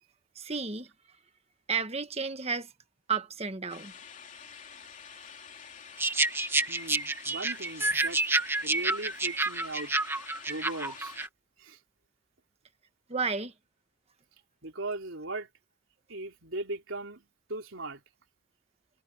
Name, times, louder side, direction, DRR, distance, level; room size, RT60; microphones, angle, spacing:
voice 1, 0.3-0.9 1.7-2.7 3.1-3.9 13.1-13.5, right 5 dB, 30° right, 1.5 m, -32 dB
sound 1, 3.7-11.3, left 7 dB, 40° left, 3.2 m, -48 dB
sound 2, 6.0-11.3, right 2 dB, 10° right, 1.9 m, -29 dB
voice 2, 6.7-8.2 8.6-9.9 10.5-11.2 11.6-11.8 14.6-15.5 16.1-18.0, right 2 dB, 70° right, 3.8 m, -38 dB
head